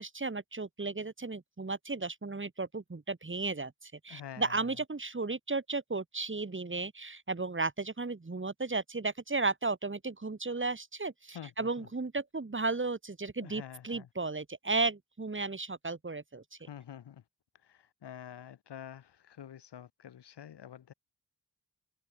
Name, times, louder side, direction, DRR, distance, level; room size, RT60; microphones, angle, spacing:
voice 1, 0.0-16.4, right 3 dB, 30° right, 2.8 m, -34 dB
voice 2, 4.1-4.8 11.3-11.9 13.4-14.1 16.6-17.2 17.6-20.9, left 9 dB, 85° left, 5.2 m, -48 dB
cardioid pair, 45°, 40 cm